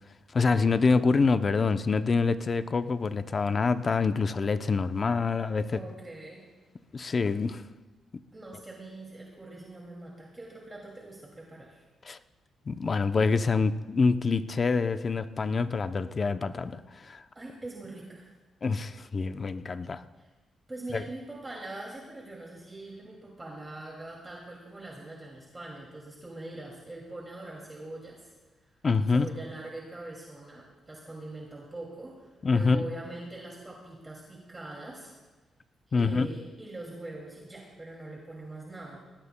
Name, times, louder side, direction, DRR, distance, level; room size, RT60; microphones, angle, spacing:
voice 1, 0.3-5.8 6.9-7.6 12.0-12.2 12.7-17.2 18.6-20.0 20.9-21.0 28.8-29.3 32.4-32.8 35.9-36.3, left 4 dB, 40° left, 11 dB, 0.6 m, -26 dB
voice 2, 5.7-6.4 7.0-7.1 8.3-11.8 17.3-18.3 20.2-20.3 20.7-28.3 28.6-28.7 29.1-35.1 35.9-39.0, right 2 dB, 20° right, -2 dB, 2.4 m, -43 dB
20.5 x 18.0 x 2.2 m, 1.2 s
cardioid pair, 95°, 0 cm